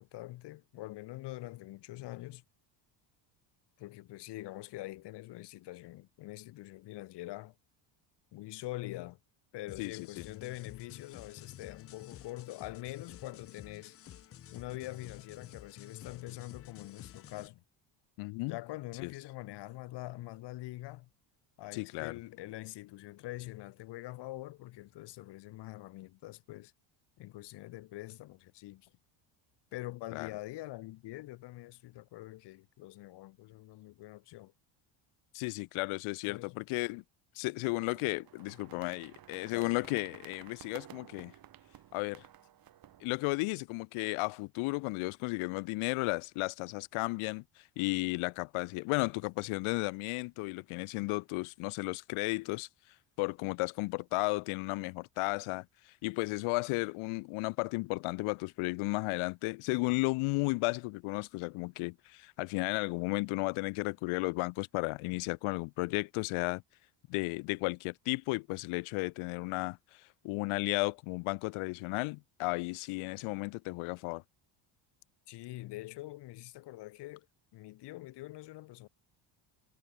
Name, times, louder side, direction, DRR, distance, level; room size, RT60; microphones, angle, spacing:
voice 1, 0.0-2.4 3.8-7.5 8.3-9.2 9.5-13.9 14.5-17.6 18.4-21.1 21.6-26.7 27.2-28.9 29.7-34.5 36.3-36.6 39.5-39.8 75.3-77.3 77.5-78.9, left 17 dB, 55° left, 1.2 m, -44 dB
sound 1, 9.7-17.5, left 11 dB, 30° left, 0.6 m, -51 dB
voice 2, 9.8-10.3 18.2-18.6 19.0-19.1 21.7-22.2 30.1-30.3 35.3-37.0 37.3-41.3 41.9-42.3 43.0-52.7 53.2-66.6 67.1-74.2, left 26 dB, 80° left, 0.9 m, -34 dB
sound 2, 37.8-43.3, right 11 dB, 45° right, 4.5 m, -54 dB
cardioid pair, 150°, 49 cm